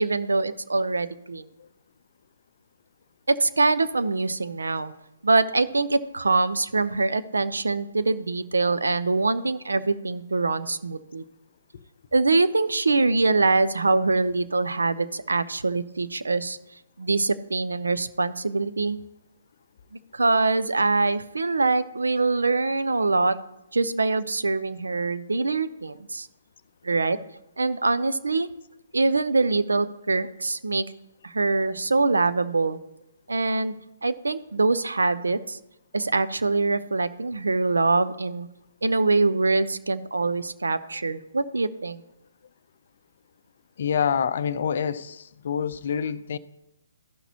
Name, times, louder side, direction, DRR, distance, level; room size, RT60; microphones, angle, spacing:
voice 1, 0.0-1.5 3.3-4.9 5.2-11.2 12.1-16.6 17.0-19.0 20.1-23.4 23.7-26.3 26.8-27.2 27.6-28.5 28.9-30.8 31.2-32.8 33.3-33.7 34.0-35.6 35.9-38.5 38.8-42.0, right 3 dB, 80° right, 0.5 m, -24 dB
voice 2, 43.8-46.4, left 7 dB, 55° left, 0.5 m, -27 dB
14.5 x 5.9 x 2.8 m
figure-of-eight pair, 135°, 0 cm